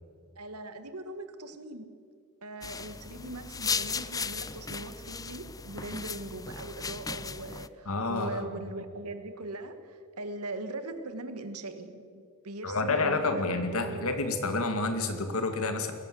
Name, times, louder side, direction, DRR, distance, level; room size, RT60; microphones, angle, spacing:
voice 1, 0.3-1.9 2.4-14.1, right 2 dB, 80° right, 9 dB, 1.8 m, -40 dB
sound 1, 2.6-7.7, left 5 dB, 15° left, 0.5 m, -36 dB
voice 2, 7.9-8.4 12.6-15.9, left 3 dB, 70° left, 7 dB, 2.3 m, -29 dB
21.0 x 17.0 x 7.8 m, 2.3 s
head